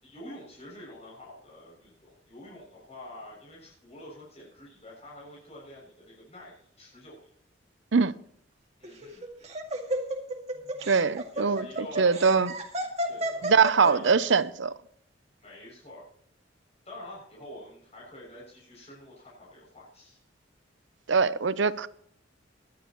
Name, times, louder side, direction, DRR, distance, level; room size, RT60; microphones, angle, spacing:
voice 1, 0.0-7.2 8.8-9.3 11.3-12.2 13.1-13.5 13.7-14.0 15.4-16.0 16.9-20.2, left 1 dB, 35° left, 6.9 m, -47 dB
Laughter, 8.8-14.3, right 1 dB, 35° right, 2.1 m, -32 dB
voice 2, 10.9-11.7 12.0-12.5 13.4-14.7 21.1-21.9, right 5 dB, 75° right, 0.7 m, -22 dB
18.5 x 11.5 x 3.1 m
head